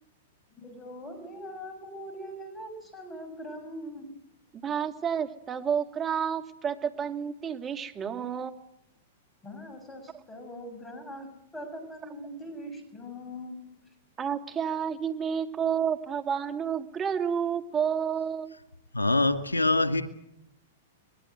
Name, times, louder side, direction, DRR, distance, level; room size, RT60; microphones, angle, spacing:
voice 1, 0.5-4.1 9.4-13.7, equal, 15° left, 7 dB, 6.8 m, -42 dB
voice 2, 4.5-8.6 14.2-18.5, right 7 dB, 25° right, 6 dB, 2.4 m, -30 dB
voice 3, 18.9-20.0, left 2 dB, 90° left, 7 dB, 2.4 m, -24 dB
24.0 x 21.0 x 7.9 m, 0.79 s
hypercardioid pair, 105°, 0 cm